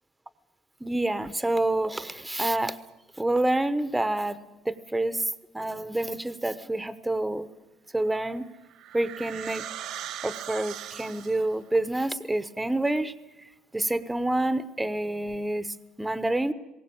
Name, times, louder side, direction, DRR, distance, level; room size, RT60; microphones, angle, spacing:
voice 1, 0.8-2.8 3.2-4.4 4.6-5.2 5.5-7.5 7.9-8.5 8.9-9.7 10.2-13.1 13.7-16.5, right 1 dB, 10° right, 14 dB, 1.0 m, -27 dB
sound 1, 8.2-11.6, right 11 dB, 70° right, 1.5 m, -39 dB
20.5 x 17.5 x 8.7 m, 1.0 s
cardioid pair, 115°, 0 cm